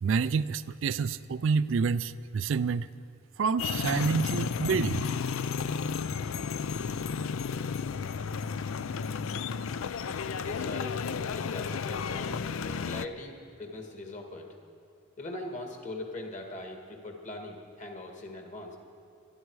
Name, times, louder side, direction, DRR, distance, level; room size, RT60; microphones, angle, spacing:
voice 1, 0.0-2.9 3.4-5.0, right 5 dB, 60° right, 14 dB, 0.3 m, -28 dB
sound 1, 3.6-13.1, left 6 dB, 75° left, 0.4 m, -32 dB
voice 2, 10.4-14.5 15.2-18.8, left 2 dB, 35° left, 2 dB, 1.8 m, -41 dB
21.5 x 12.0 x 4.7 m, 2.3 s
head